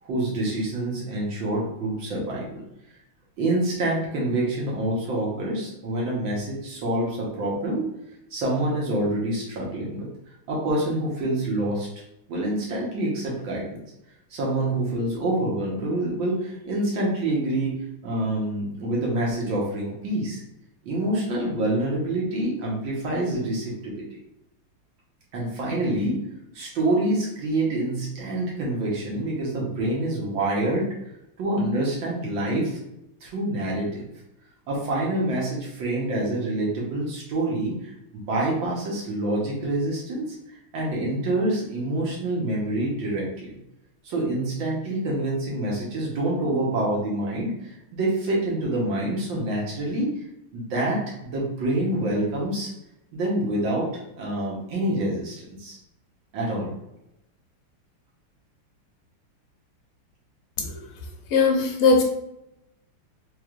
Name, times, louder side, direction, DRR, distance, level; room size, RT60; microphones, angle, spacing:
voice 1, 0.0-2.6 3.4-7.9 8.3-10.1 10.5-11.9 12.3-13.8 14.3-20.4 20.8-24.2 25.3-26.2 26.5-30.9 31.4-32.8 33.2-34.1 34.7-40.4 40.7-43.6 44.0-50.2 50.5-52.7 53.1-53.9 54.2-55.8 56.3-56.8, right 1 dB, 65° right, -4 dB, 1.7 m, -26 dB
voice 2, 61.3-62.0, left 4 dB, 85° left, 1 dB, 1.6 m, -19 dB
4.3 x 3.2 x 2.4 m, 0.84 s
omnidirectional pair, 2.4 m